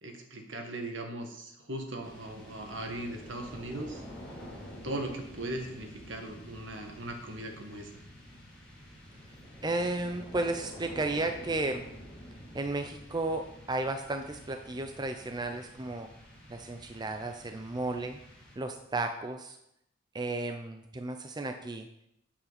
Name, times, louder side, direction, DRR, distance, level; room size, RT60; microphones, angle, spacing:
voice 1, 0.0-4.0 4.8-8.0, right 1 dB, 65° right, 3 dB, 1.9 m, -39 dB
sound 1, 2.0-18.9, equal, 5° left, 4.2 m, -49 dB
voice 2, 9.6-11.9 12.5-16.1 16.5-18.2 18.6-19.6 20.1-21.9, right 2 dB, 20° right, 6 dB, 0.6 m, -33 dB
12.0 x 8.6 x 4.3 m, 0.78 s
head